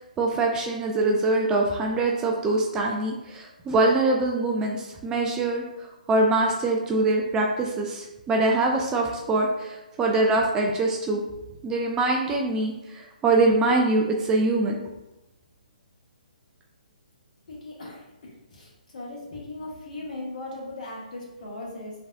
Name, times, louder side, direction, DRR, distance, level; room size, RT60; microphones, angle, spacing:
voice 1, 0.2-11.2 11.6-14.8, right 2 dB, 15° right, 0 dB, 0.4 m, -24 dB
voice 2, 17.5-21.9, left 2 dB, 60° left, -2 dB, 1.5 m, -38 dB
5.3 x 3.4 x 2.5 m, 1.0 s
figure-of-eight pair, 135°, 5 cm